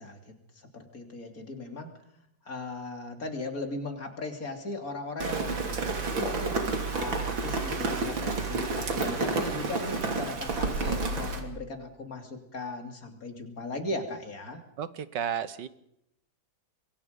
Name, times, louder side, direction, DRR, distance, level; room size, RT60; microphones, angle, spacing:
voice 1, 0.0-1.9 2.4-14.6, left 2 dB, 45° left, 5 dB, 3.5 m, -38 dB
Rain, 5.2-11.4, right 3 dB, 90° right, 3.6 m, -30 dB
voice 2, 14.8-15.7, right 9 dB, 70° right, 14 dB, 1.7 m, -32 dB
27.0 x 22.5 x 5.3 m, 0.78 s
omnidirectional pair, 2.1 m